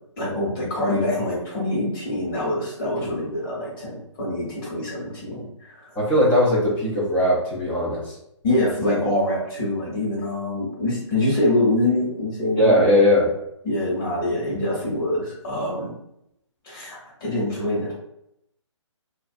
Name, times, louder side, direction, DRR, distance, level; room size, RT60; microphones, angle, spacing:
voice 1, 0.2-5.9 8.4-12.8 13.6-15.9 16.6-17.9, left 1 dB, 45° left, -6 dB, 1.2 m, -25 dB
voice 2, 6.0-8.2 12.6-13.3, left 1 dB, 10° left, -6 dB, 0.4 m, -19 dB
2.4 x 2.3 x 2.5 m, 0.80 s
hypercardioid pair, 150°, 16 cm